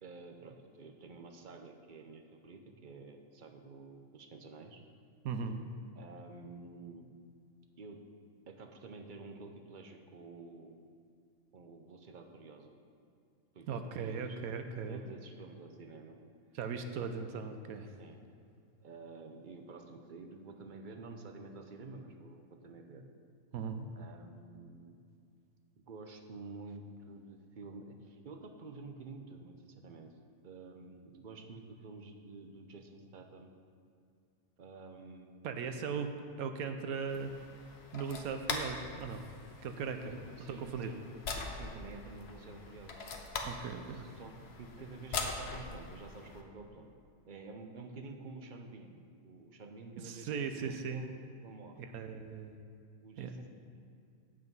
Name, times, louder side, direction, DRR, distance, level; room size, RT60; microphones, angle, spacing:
voice 1, 0.0-4.8 6.0-7.1 7.8-8.0 8.5-10.8 11.5-12.7 13.5-14.4 14.9-16.2 18.0-18.2 18.8-23.0 24.0-25.0 25.9-30.1 30.4-33.5 34.6-35.6 40.0-41.0 41.5-43.0 43.9-46.9 47.3-51.8 53.0-53.5, right 3 dB, 45° right, 4 dB, 0.7 m, -50 dB
voice 2, 5.2-5.6 13.7-15.0 16.5-17.9 23.5-23.9 35.4-36.1 36.4-37.3 37.9-39.3 39.6-40.1 40.6-40.9 43.4-44.1 50.0-51.0 51.8-52.6 53.2-53.4, right 6 dB, 85° right, 7 dB, 1.1 m, -38 dB
sound 1, 37.1-46.4, left 4 dB, 55° left, 1.0 m, -42 dB
8.4 x 7.8 x 5.4 m, 2.4 s
omnidirectional pair, 1.5 m